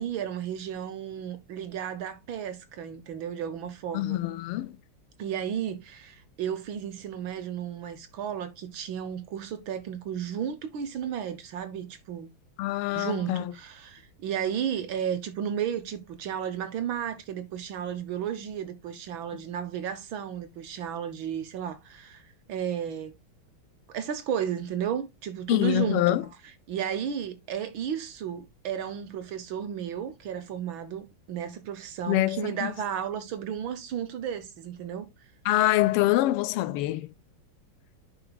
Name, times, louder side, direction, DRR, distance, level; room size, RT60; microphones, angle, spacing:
voice 1, 0.0-4.2 5.2-12.3 12.9-23.1 23.9-26.2 26.7-35.1, right 9 dB, 70° right, 1.5 m, -33 dB
voice 2, 3.9-4.8 12.6-13.4 19.3-19.4 25.5-26.2 32.1-32.7 35.4-37.1, left 16 dB, 85° left, 1.5 m, -25 dB
9.9 x 4.9 x 2.2 m
omnidirectional pair, 2.4 m